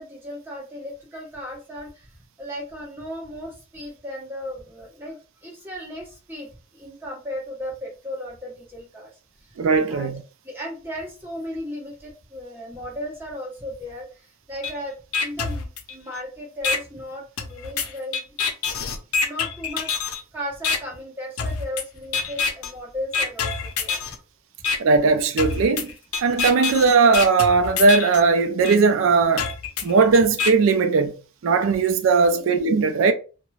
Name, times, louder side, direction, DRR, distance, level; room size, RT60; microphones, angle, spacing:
voice 1, 0.0-2.1 2.4-9.1 9.9-10.1 10.4-18.4 19.2-20.0 20.3-23.5 23.8-24.0 32.3-32.4, left 1 dB, 10° right, 0.9 m, -35 dB
voice 2, 9.6-10.2 24.8-25.9 26.2-29.5 29.8-31.1 31.4-33.1, right 4 dB, 65° right, 0.4 m, -18 dB
sound 1, 14.6-14.7 15.1-16.2 16.6-16.8 17.4-20.2 20.6-20.8 21.4-21.8 22.1-22.7 23.1-24.2 24.6-24.8 25.4-28.2 28.6-28.8 29.4-30.5, left 5 dB, 85° left, 0.5 m, -26 dB
3.0 x 2.1 x 2.3 m
head